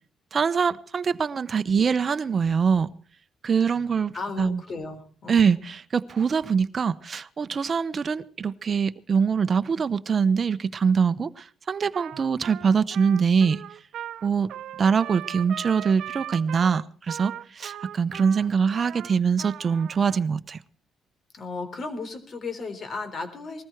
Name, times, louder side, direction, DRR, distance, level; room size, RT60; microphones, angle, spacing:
voice 1, 0.3-2.9 3.4-4.6 5.3-13.6 14.2-14.5 14.8-20.6, right 6 dB, 45° right, 0.9 m, -23 dB
voice 2, 3.7-5.5 21.3-23.6, left 3 dB, 45° left, 3.7 m, -35 dB
Trumpet, 11.9-20.2, right 11 dB, 75° right, 0.7 m, -39 dB
20.0 x 14.0 x 4.6 m
cardioid pair, 90°, 0 cm